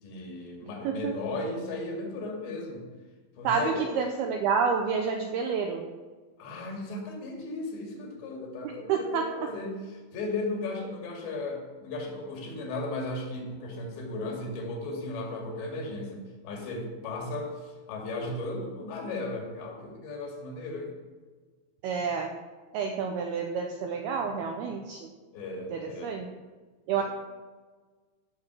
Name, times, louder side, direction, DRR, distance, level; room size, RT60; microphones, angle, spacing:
voice 1, 0.0-2.8 3.4-3.9 6.4-20.9 25.3-26.1 26.9-27.0, left 2 dB, 70° left, 0 dB, 4.3 m, -36 dB
voice 2, 0.8-1.2 3.4-5.8 8.9-9.5 21.8-22.3 22.7-25.1 25.7-26.3 26.9-27.0, right 6 dB, 90° right, 4 dB, 2.2 m, -29 dB
15.0 x 6.7 x 6.1 m, 1.4 s
omnidirectional pair, 5.4 m